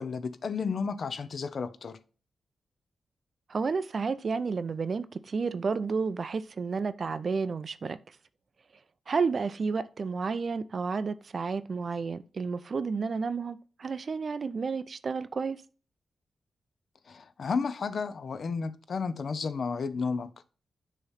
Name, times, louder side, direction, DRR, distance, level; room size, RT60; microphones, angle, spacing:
voice 1, 0.0-2.0 17.1-20.3, left 5 dB, 55° left, 0.6 m, -32 dB
voice 2, 3.5-8.0 9.1-15.6, right 5 dB, 50° right, 0.4 m, -31 dB
6.6 x 3.1 x 5.6 m
wide cardioid pair, 110°, 0 cm